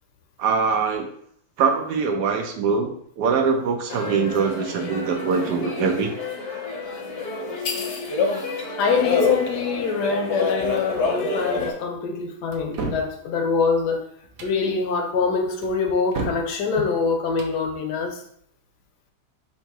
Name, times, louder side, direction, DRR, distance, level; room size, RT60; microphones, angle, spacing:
voice 1, 0.4-1.1 1.6-6.1, right 5 dB, 80° right, 1.3 m, -23 dB
sound 1, 3.9-11.7, left 4 dB, 55° left, 0.9 m, -27 dB
voice 2, 8.8-14.1 14.4-18.2, left 4 dB, 75° left, 1.3 m, -24 dB
sound 2, 12.5-13.1 14.2-14.6 15.6-16.5 17.2-17.6, right 3 dB, 60° right, 1.1 m, -32 dB
3.7 x 2.9 x 4.6 m
omnidirectional pair, 1.8 m